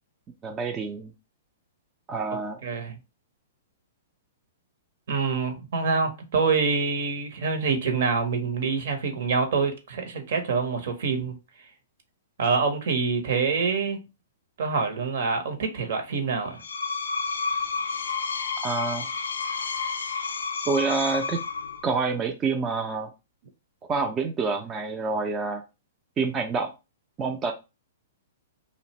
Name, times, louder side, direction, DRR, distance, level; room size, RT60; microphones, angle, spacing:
voice 1, 0.4-1.1 2.1-2.6 18.6-19.1 20.7-21.4 21.8-23.1 23.9-25.6 26.2-26.7 27.2-27.5, right 4 dB, 20° right, 0.4 m, -27 dB
voice 2, 2.6-3.0 5.1-11.4 12.4-14.0 14.6-16.5, right 5 dB, 65° right, 0.7 m, -26 dB
Screech, 16.5-22.0, left 5 dB, 85° left, 0.3 m, -30 dB
2.5 x 2.0 x 2.9 m
hypercardioid pair, 125°, 0 cm